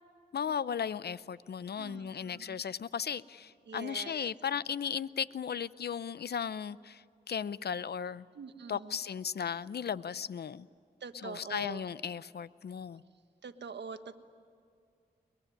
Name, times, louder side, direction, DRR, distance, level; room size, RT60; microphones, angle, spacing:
voice 1, 0.3-8.3 8.7-10.7 11.2-13.0, left 7 dB, 70° left, 17 dB, 0.6 m, -36 dB
voice 2, 1.8-2.6 3.7-4.3 8.3-9.0 11.0-11.8 13.4-14.2, right 5 dB, 85° right, 8 dB, 1.4 m, -44 dB
22.5 x 22.0 x 9.9 m, 2.3 s
cardioid pair, 55°, 18 cm